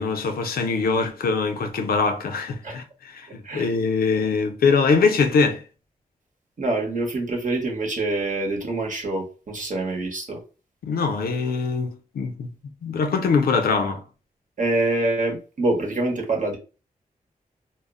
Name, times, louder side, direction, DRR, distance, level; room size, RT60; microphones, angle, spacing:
voice 1, 0.0-5.6 10.8-12.5 12.8-14.0, left 4 dB, 90° left, 0.5 m, -23 dB
voice 2, 6.6-10.4 14.6-16.6, right 2 dB, 60° right, 0.9 m, -25 dB
2.1 x 2.0 x 3.5 m
cardioid pair, 60°, 15 cm